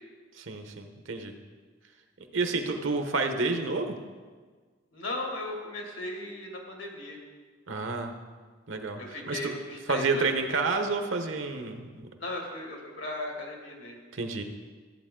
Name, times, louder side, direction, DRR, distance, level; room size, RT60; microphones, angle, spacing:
voice 1, 0.4-1.3 2.3-3.9 7.7-8.1 8.7-9.5 9.9-12.1 14.1-14.4, right 3 dB, 90° right, 6 dB, 1.1 m, -29 dB
voice 2, 4.9-7.2 9.0-10.3 12.2-14.0, left 2 dB, 85° left, 0 dB, 2.2 m, -37 dB
14.5 x 8.5 x 3.8 m, 1.5 s
head